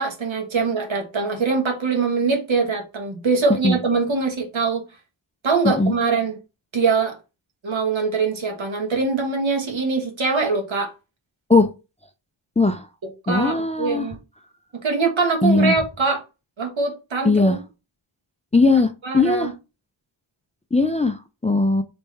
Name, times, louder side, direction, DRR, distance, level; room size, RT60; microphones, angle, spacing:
voice 1, 0.0-4.8 5.4-6.3 6.7-7.1 7.6-10.9 13.3-14.2 14.7-16.2 16.6-17.6 19.0-19.5, right 4 dB, 75° right, 1.5 m, -23 dB
voice 2, 12.6-12.9 13.3-14.1 15.4-15.8 17.2-17.6 18.5-19.5 20.7-21.8, left 3 dB, 15° left, 0.4 m, -19 dB
3.4 x 3.3 x 4.1 m
wide cardioid pair, 90°, 47 cm